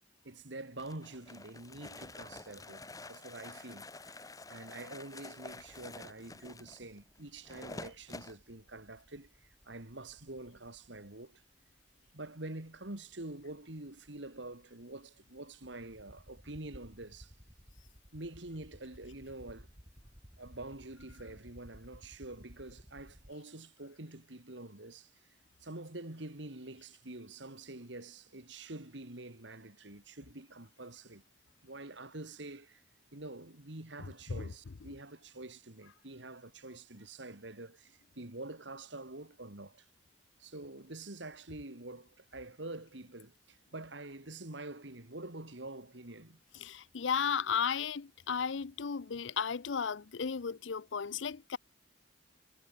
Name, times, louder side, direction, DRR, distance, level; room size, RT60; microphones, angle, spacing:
voice 1, 0.2-11.4 12.1-17.3 18.1-19.7 20.4-25.1 25.6-31.2 31.6-32.8 33.1-39.9 40.4-46.4, right 2 dB, 70° right, 2.6 m, -46 dB
sound 1, 0.8-8.4, left 2 dB, 20° left, 2.1 m, -48 dB
sound 2, 5.6-23.3, equal, 20° right, 6.3 m, -58 dB
voice 2, 46.6-51.6, left 6 dB, 75° left, 0.6 m, -34 dB
head